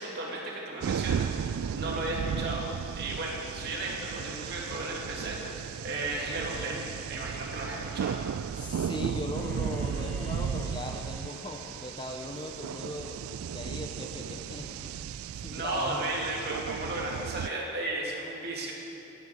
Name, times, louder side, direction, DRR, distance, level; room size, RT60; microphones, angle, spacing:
voice 1, 0.0-8.2 15.5-18.7, right 2 dB, 50° right, -3 dB, 2.8 m, -34 dB
sound 1, 0.8-17.5, right 7 dB, 90° right, 0.3 m, -35 dB
voice 2, 8.5-13.2 13.5-16.1, left 1 dB, 20° left, 3 dB, 1.0 m, -39 dB
sound 2, 9.3-13.2, left 1 dB, 60° left, 3.8 m, -52 dB
18.5 x 15.5 x 4.7 m, 2.9 s
head